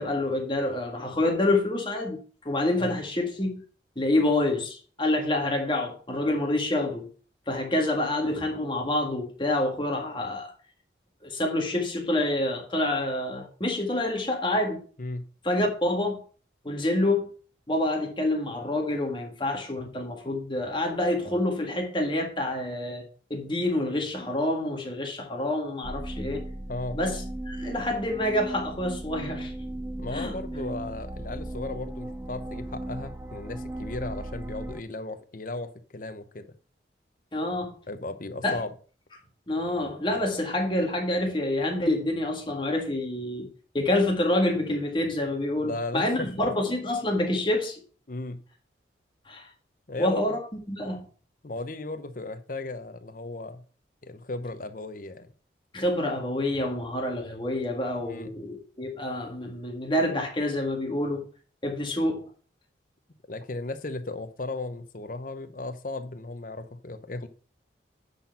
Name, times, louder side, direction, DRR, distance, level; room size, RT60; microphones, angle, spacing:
voice 1, 0.0-3.6 3.9-7.1 7.5-10.5 11.2-14.8 15.4-16.2 16.6-17.3 17.7-23.0 23.3-26.4 26.9-29.5 30.1-30.4 37.3-37.8 38.4-38.6 39.5-43.5 43.7-47.8 49.3-49.5 50.0-50.4 50.7-51.0 55.7-61.3 61.6-62.2, left 1 dB, 25° left, 1.7 m, -27 dB
sound 1, 25.8-34.8, right 1 dB, 10° right, 0.4 m, -37 dB
voice 2, 30.0-36.5 37.9-38.7 45.6-46.5 48.1-48.4 49.9-50.3 51.4-53.6 54.0-55.3 58.0-58.3 63.3-67.3, left 2 dB, 45° left, 0.8 m, -36 dB
10.0 x 4.3 x 5.6 m
head